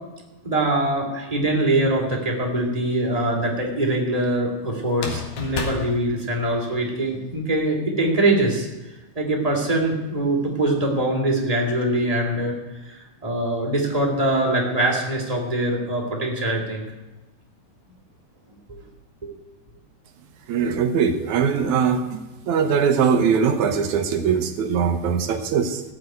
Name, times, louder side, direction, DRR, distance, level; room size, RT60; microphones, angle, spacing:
voice 1, 0.4-8.7 9.1-12.5 12.9-16.8 19.2-19.3 20.6-20.7, right 1 dB, 10° right, -1 dB, 2.7 m, -23 dB
sound 1, 1.8-2.5 4.9-6.9, left 4 dB, 70° left, 3.3 m, -32 dB
voice 2, 20.5-22.2 22.5-25.8, right 6 dB, 65° right, 7 dB, 2.2 m, -21 dB
14.5 x 7.7 x 9.2 m, 1.1 s
omnidirectional pair, 4.0 m